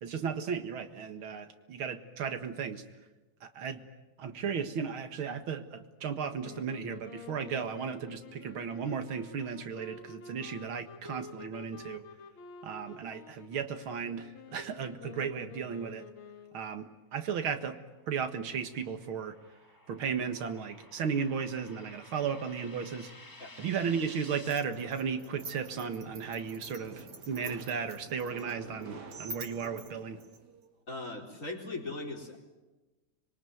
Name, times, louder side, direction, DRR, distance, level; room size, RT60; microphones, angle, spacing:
voice 1, 0.0-2.8 3.4-3.8 4.2-12.0 12.6-16.0 16.5-17.8 18.1-19.4 19.9-23.1 23.6-30.2, right 6 dB, 85° right, 8 dB, 2.5 m, -35 dB
sound 1, 6.4-16.8, left 6 dB, 75° left, 2.2 m, -50 dB
sound 2, 17.8-24.6, left 2 dB, 15° left, 1.1 m, -54 dB
sound 3, 24.5-30.7, right 3 dB, 55° right, 2.5 m, -46 dB
voice 2, 30.9-32.4, left 2 dB, 40° left, 1 dB, 4.5 m, -39 dB
26.0 x 22.5 x 9.3 m, 1.1 s
omnidirectional pair, 2.2 m